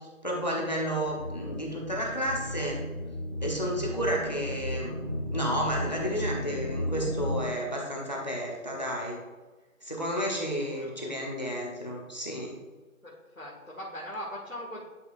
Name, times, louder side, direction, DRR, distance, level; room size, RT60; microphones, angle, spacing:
voice 1, 0.0-2.8 3.4-9.2 9.8-12.6, equal, 30° left, -2 dB, 1.2 m, -32 dB
sound 1, 1.0-7.4, left 1 dB, 40° right, 1.7 m, -34 dB
voice 2, 10.7-11.5 13.0-14.9, equal, 75° left, -6 dB, 2.2 m, -41 dB
11.5 x 4.6 x 2.6 m, 1.3 s
figure-of-eight pair, 175°, 41 cm